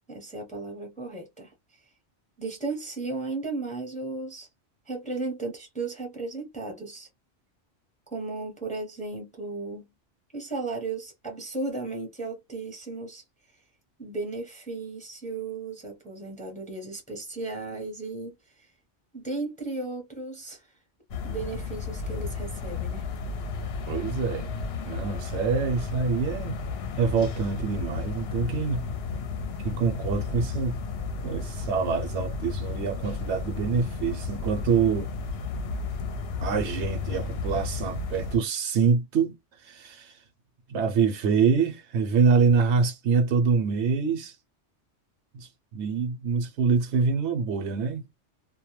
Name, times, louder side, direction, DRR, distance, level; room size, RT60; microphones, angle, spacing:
voice 1, 0.1-1.5 2.4-4.5 4.9-7.1 8.1-9.9 10.3-13.2 14.0-18.7 19.1-20.7 21.2-23.1, right 3 dB, 10° left, 0.6 m, -35 dB
sound 1, 21.1-38.4, left 4 dB, 65° left, 0.7 m, -33 dB
voice 2, 23.9-24.5 24.9-26.5 27.0-28.9 29.6-30.8 31.2-35.1 36.4-39.4 39.6-40.1 40.7-44.3 45.3-48.1, right 5 dB, 70° right, 0.9 m, -25 dB
2.2 x 2.1 x 2.9 m
omnidirectional pair, 1.2 m